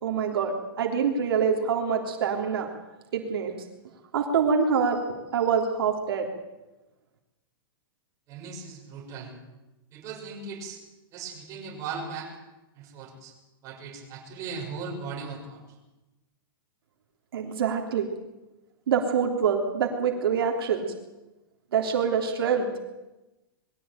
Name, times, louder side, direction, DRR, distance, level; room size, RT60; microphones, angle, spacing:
voice 1, 0.0-2.7 3.1-3.5 4.1-5.0 5.3-6.3 17.3-18.1 18.9-20.9 21.7-22.7, right 6 dB, 75° right, 1 dB, 3.4 m, -25 dB
voice 2, 8.3-9.3 9.9-10.8 11.1-12.3 12.7-13.3 13.6-15.8, right 5 dB, 25° right, 0 dB, 6.1 m, -38 dB
21.5 x 15.5 x 9.0 m, 1.0 s
supercardioid pair, 165°, 12 cm